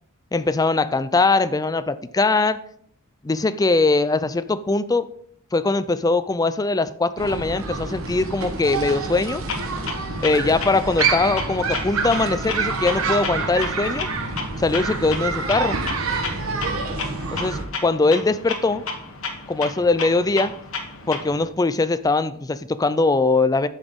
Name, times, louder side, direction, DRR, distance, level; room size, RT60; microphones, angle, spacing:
voice 1, 0.3-2.6 3.2-5.1 5.5-9.4 10.2-14.1 14.6-15.8 17.3-18.8 19.5-20.5 21.1-23.7, left 3 dB, 15° left, 13 dB, 0.4 m, -21 dB
sound 1, 7.2-17.7, right 4 dB, 75° right, 1.3 m, -27 dB
Clock, 9.5-21.5, left 4 dB, 70° left, 1.5 m, -33 dB
9.8 x 7.0 x 3.8 m, 0.64 s
head